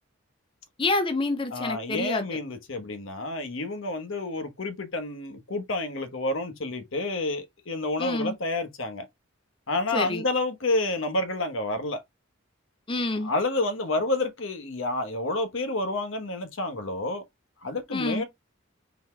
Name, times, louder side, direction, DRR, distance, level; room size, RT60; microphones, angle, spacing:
voice 1, 0.8-2.3 8.0-8.3 9.9-10.2 12.9-13.3 17.9-18.2, left 2 dB, 25° left, 0.6 m, -27 dB
voice 2, 1.5-9.1 9.7-12.0 13.2-17.2 17.6-18.2, left 2 dB, 75° left, 1.1 m, -29 dB
4.0 x 3.5 x 3.2 m
head